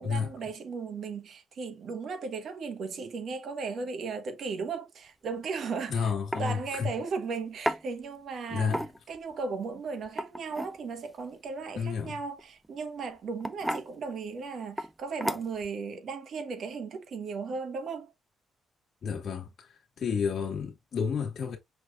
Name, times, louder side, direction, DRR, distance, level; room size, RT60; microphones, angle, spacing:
voice 1, 0.0-6.1 6.4-8.8 9.1-18.1, right 4 dB, 60° right, 1.2 m, -36 dB
sound 1, 5.6-5.8 6.3-6.5 7.7-7.8 8.6-9.2 10.0-10.8 12.4-12.7 13.4-13.9 14.8-14.9 15.2-15.7, equal, 5° right, 0.4 m, -32 dB
voice 2, 5.9-6.9 8.5-8.8 11.8-12.2 19.0-19.7 20.0-21.6, left 6 dB, 55° left, 1.6 m, -31 dB
5.7 x 3.2 x 2.4 m
cardioid pair, 90°, 0 cm